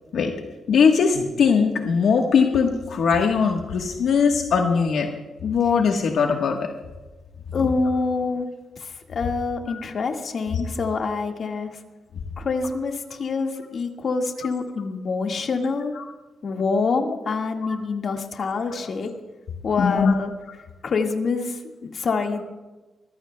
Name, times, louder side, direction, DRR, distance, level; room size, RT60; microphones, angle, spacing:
voice 1, 0.7-5.1 5.4-6.7 9.7-9.8 17.6-17.7 19.8-20.1, left 6 dB, 80° left, 2 dB, 1.2 m, -20 dB
voice 2, 7.5-8.5 8.8-11.8 12.4-16.0 16.4-19.1 19.6-20.3 20.8-22.4, left 4 dB, 55° left, 3 dB, 1.7 m, -26 dB
25.0 x 15.0 x 2.2 m, 1.1 s
cardioid pair, 115°, 0 cm